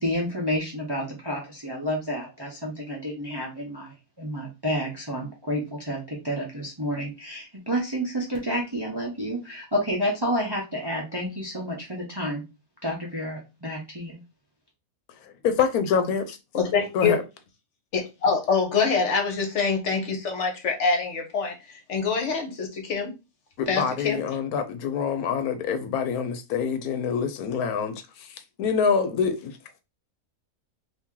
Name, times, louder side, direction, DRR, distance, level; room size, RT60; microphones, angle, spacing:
voice 1, 0.0-12.4 12.8-14.2, equal, 25° right, 0.6 m, -30 dB
voice 2, 15.4-16.4 16.9-17.2 23.6-28.3 28.6-29.6, left 6 dB, 80° left, 1.1 m, -26 dB
voice 3, 16.5-17.2 17.9-23.1 23.7-24.2, left 5 dB, 55° left, 1.1 m, -25 dB
2.9 x 2.7 x 3.6 m
omnidirectional pair, 1.6 m